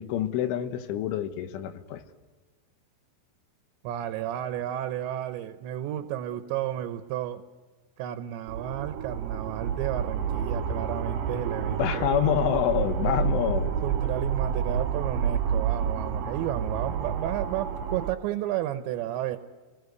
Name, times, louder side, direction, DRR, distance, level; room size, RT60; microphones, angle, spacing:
voice 1, 0.0-2.0 11.8-13.8, left 10 dB, 80° left, 10 dB, 3.7 m, -27 dB
voice 2, 3.8-7.4 8.0-12.1 13.8-19.4, right 12 dB, 75° right, 9 dB, 3.0 m, -32 dB
sound 1, 8.5-18.1, right 7 dB, 55° right, 3.2 m, -29 dB
29.0 x 20.5 x 8.1 m, 1.4 s
omnidirectional pair, 5.7 m